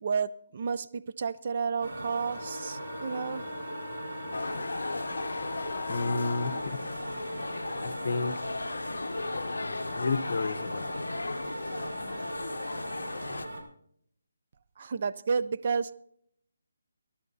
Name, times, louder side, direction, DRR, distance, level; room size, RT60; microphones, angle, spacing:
voice 1, 0.0-3.5 14.8-15.9, right 5 dB, 45° right, 12 dB, 0.4 m, -31 dB
sound 1, 1.8-13.6, right 1 dB, 60° right, 4.5 m, -39 dB
Wind instrument woodwind instrument, 2.3-6.7, left 6 dB, 5° left, 5.6 m, -43 dB
sound 2, 4.3-13.5, left 3 dB, 85° left, 0.5 m, -36 dB
voice 2, 5.9-6.8 7.8-8.4 9.3-11.0, left 3 dB, 55° left, 12 dB, 0.8 m, -32 dB
21.5 x 11.5 x 2.7 m, 0.68 s
hypercardioid pair, 165°, 0 cm